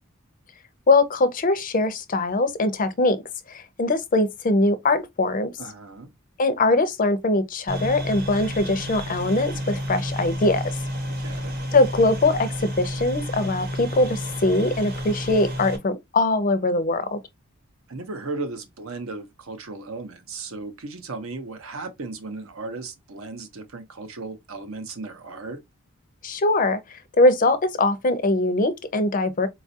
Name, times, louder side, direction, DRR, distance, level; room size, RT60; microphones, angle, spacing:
voice 1, 0.9-3.2 3.5-5.5 6.4-10.6 11.7-17.2 26.2-29.5, left 2 dB, 40° left, 0.5 m, -22 dB
voice 2, 5.6-6.1 11.2-11.6 17.9-25.6, right 3 dB, 70° right, 0.7 m, -36 dB
sound 1, 7.7-15.8, equal, 45° right, 0.9 m, -31 dB
4.1 x 2.4 x 2.6 m
head